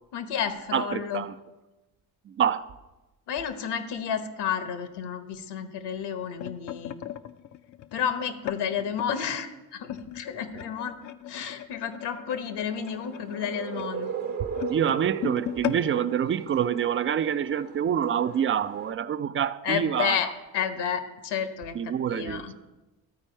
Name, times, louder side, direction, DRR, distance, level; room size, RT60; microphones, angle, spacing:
voice 1, 0.1-1.2 3.3-6.9 7.9-11.0 11.3-14.1 19.6-21.7 22.1-22.5, left 8 dB, 70° left, 9 dB, 1.0 m, -31 dB
voice 2, 0.7-1.3 2.3-2.7 14.7-20.2 21.7-22.5, right 8 dB, 30° right, 15 dB, 0.4 m, -26 dB
sound 1, 5.9-9.2 9.9-17.2 17.5-17.7 18.0-18.3 19.0-19.1, left 13 dB, 45° left, 0.5 m, -38 dB
sound 2, 12.8-18.9, right 7 dB, 55° right, 1.1 m, -37 dB
13.0 x 4.4 x 4.4 m, 1.1 s
supercardioid pair, 65°, 42 cm